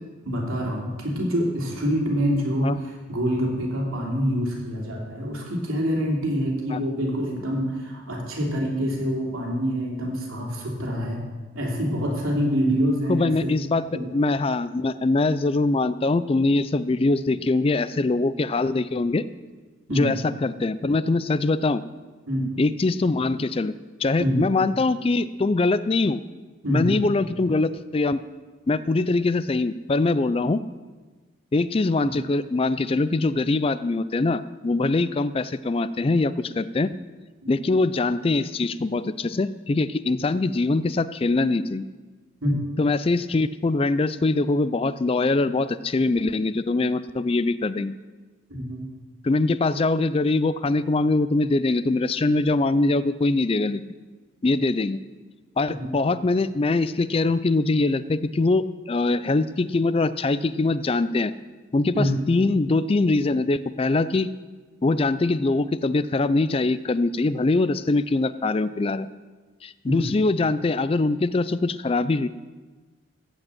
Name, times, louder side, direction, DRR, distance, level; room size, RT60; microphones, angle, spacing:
voice 1, 0.2-2.7 3.1-11.2 11.5-13.5 13.9-14.0 19.9-20.1 22.3-22.5 24.2-24.4 26.6-26.9 42.4-42.6 48.5-48.8 55.8-55.9 61.9-62.2 69.9-70.1, equal, 90° right, -2 dB, 3.1 m, -25 dB
voice 2, 13.1-13.8 14.1-19.2 19.9-21.8 22.6-23.7 24.0-26.2 26.7-28.2 28.7-30.6 31.5-37.0 37.5-41.9 42.8-47.9 49.2-53.8 54.4-55.0 55.6-61.3 61.7-64.3 64.8-69.1 69.6-72.3, left 3 dB, 25° left, 15 dB, 0.3 m, -23 dB
14.5 x 5.3 x 8.7 m, 1.3 s
head